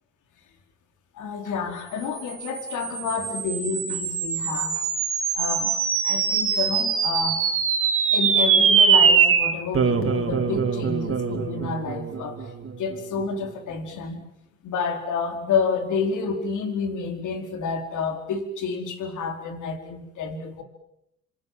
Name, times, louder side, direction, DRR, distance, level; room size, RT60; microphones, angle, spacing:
voice 1, 1.2-4.8 5.3-5.7 6.0-7.4 8.1-12.4 12.8-14.2 14.6-20.6, left 5 dB, 80° left, 6 dB, 4.6 m, -29 dB
sound 1, 2.3-12.9, right 6 dB, 45° right, 3.2 m, -23 dB
27.0 x 26.5 x 7.6 m, 0.79 s
cardioid pair, 90°, 30 cm